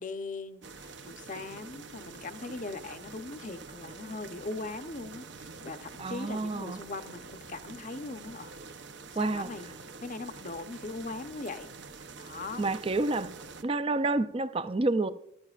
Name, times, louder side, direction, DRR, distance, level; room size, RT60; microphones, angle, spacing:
voice 1, 0.0-8.8 9.1-9.7 10.0-11.7 12.2-12.6, left 3 dB, 40° left, 0.7 m, -40 dB
sound 1, 0.6-13.6, right 4 dB, 60° right, 0.7 m, -46 dB
voice 2, 6.0-6.8 9.2-9.5 12.6-13.3 13.6-15.1, right 2 dB, 30° right, 0.4 m, -29 dB
14.0 x 13.0 x 2.4 m
head